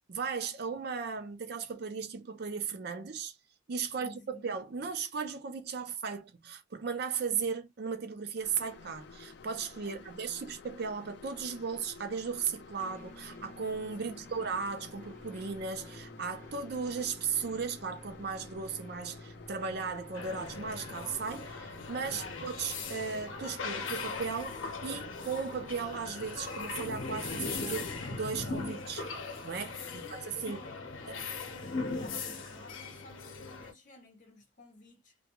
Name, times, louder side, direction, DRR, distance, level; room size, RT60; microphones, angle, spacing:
voice 1, 0.1-3.3 3.7-29.1 29.4-29.8 30.1-30.6 31.1-31.2, right 5 dB, 55° right, 0.5 m, -36 dB
voice 2, 4.0-4.5 9.8-10.2 14.0-14.5 22.1-22.4 29.8-35.2, left 2 dB, 40° left, 0.8 m, -54 dB
sound 1, 8.4-28.2, left 4 dB, 60° left, 0.4 m, -52 dB
sound 2, 12.8-23.6, right 1 dB, 10° left, 0.6 m, -53 dB
sound 3, 20.1-33.7, left 4 dB, 90° left, 0.7 m, -39 dB
2.3 x 2.2 x 2.9 m
head